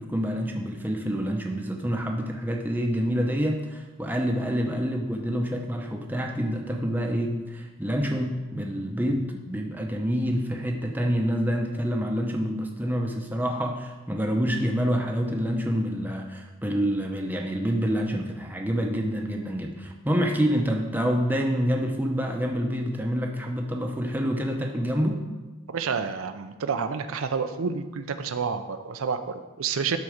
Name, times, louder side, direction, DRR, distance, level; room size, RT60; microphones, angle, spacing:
voice 1, 0.0-25.2, equal, 10° right, 2 dB, 0.7 m, -27 dB
voice 2, 25.7-30.0, right 5 dB, 75° right, 9 dB, 0.5 m, -29 dB
12.5 x 4.2 x 5.0 m, 1.2 s
head